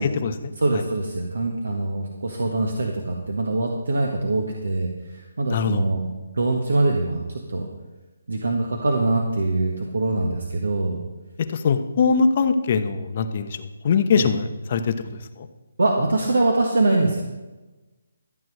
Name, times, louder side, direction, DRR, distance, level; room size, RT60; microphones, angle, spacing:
voice 1, 0.0-0.8 5.5-5.9 11.4-13.6 13.8-15.0 15.4-15.5, left 5 dB, 40° left, 9 dB, 1.0 m, -22 dB
voice 2, 0.6-6.0 6.3-7.7 8.3-11.0 14.1-14.3 15.8-17.2, right 2 dB, 85° right, 1 dB, 1.6 m, -23 dB
13.5 x 7.5 x 6.4 m, 1.2 s
hypercardioid pair, 155°, 0 cm